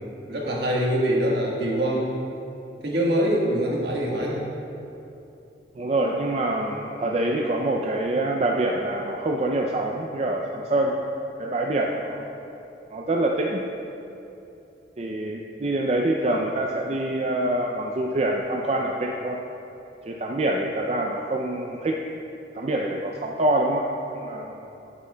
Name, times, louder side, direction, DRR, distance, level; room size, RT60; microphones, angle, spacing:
voice 1, 0.3-2.3 2.8-4.4, equal, 65° right, -3 dB, 1.4 m, -24 dB
voice 2, 5.8-11.0 11.4-12.3 12.9-13.6 15.0-19.4 20.1-22.0 22.5-23.9 24.1-24.7, right 1 dB, 35° right, 0 dB, 0.4 m, -25 dB
10.5 x 8.8 x 2.2 m, 2.8 s
head